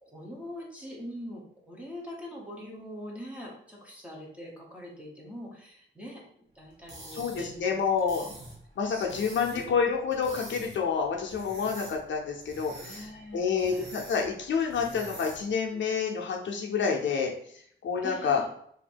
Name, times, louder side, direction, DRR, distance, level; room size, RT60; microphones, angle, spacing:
voice 1, 0.0-6.2 6.5-8.0 8.9-9.7 12.8-13.9 14.8-14.9 15.7-15.8 18.0-18.5, equal, 5° right, -3 dB, 1.0 m, -43 dB
sound 1, 6.7-15.6, right 1 dB, 65° right, 1.4 m, -47 dB
voice 2, 7.1-8.3 8.8-13.1 13.3-17.3 17.8-18.4, left 6 dB, 65° left, 0 dB, 0.7 m, -28 dB
2.9 x 2.7 x 4.2 m, 0.65 s
wide cardioid pair, 140°, 20 cm